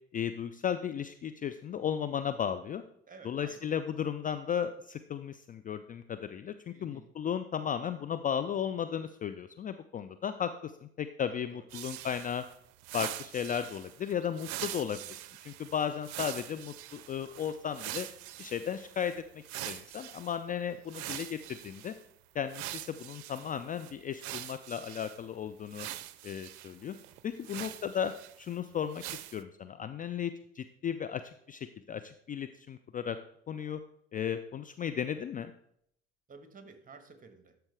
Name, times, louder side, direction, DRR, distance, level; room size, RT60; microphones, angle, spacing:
voice 1, 0.1-2.8 3.2-12.4 12.9-15.0 15.5-18.1 18.4-19.1 19.6-21.9 22.3-25.9 26.2-27.0 27.2-28.1 28.4-33.2 33.5-33.8 34.1-35.5, left 8 dB, 25° left, 10 dB, 0.4 m, -35 dB
voice 2, 3.1-3.7 6.7-7.1 11.3-11.6 27.4-27.7 36.3-37.6, right 4 dB, 25° right, 8 dB, 1.4 m, -53 dB
sound 1, 11.7-20.4 20.9-22.0 22.5-25.2 25.7-28.5 28.9-29.4, right 14 dB, 60° right, 0.6 m, -43 dB
12.5 x 4.5 x 3.4 m, 0.70 s
hypercardioid pair, 60°, 32 cm